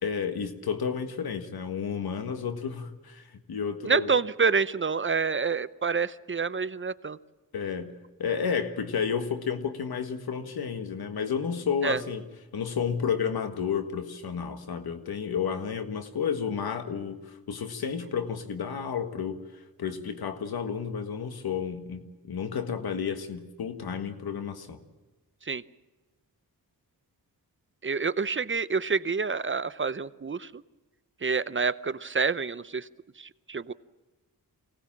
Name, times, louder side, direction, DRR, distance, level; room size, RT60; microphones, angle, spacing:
voice 1, 0.0-4.2 7.5-7.9 8.2-12.2 12.5-19.4 19.8-24.8, left 6 dB, 90° left, 8 dB, 1.7 m, -31 dB
voice 2, 3.9-7.2 11.8-12.0 25.5-25.6 27.8-30.5 31.2-32.9 33.2-33.7, right 5 dB, 35° right, 16 dB, 0.7 m, -27 dB
24.5 x 18.0 x 7.5 m, 1.2 s
cardioid pair, 70°, 36 cm